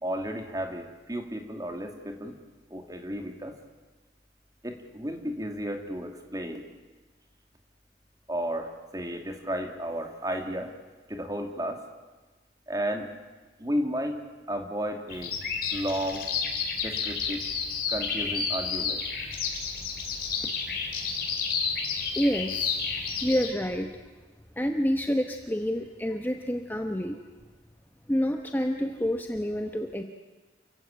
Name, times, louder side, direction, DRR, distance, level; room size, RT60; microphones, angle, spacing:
voice 1, 0.0-2.3 2.7-3.5 4.6-6.6 8.3-10.7 11.1-11.8 12.7-13.1 13.6-14.2 14.5-15.3 15.7-16.3 16.8-17.4 17.9-19.0, equal, 20° right, 4 dB, 2.4 m, -33 dB
Bird vocalization bird call bird song, 15.1-23.5, left 5 dB, 55° left, 4.3 m, -31 dB
voice 2, 22.2-22.8 23.2-23.9 24.6-27.2 28.1-30.0, equal, 10° left, 4 dB, 1.0 m, -28 dB
28.5 x 15.5 x 8.9 m, 1.3 s
head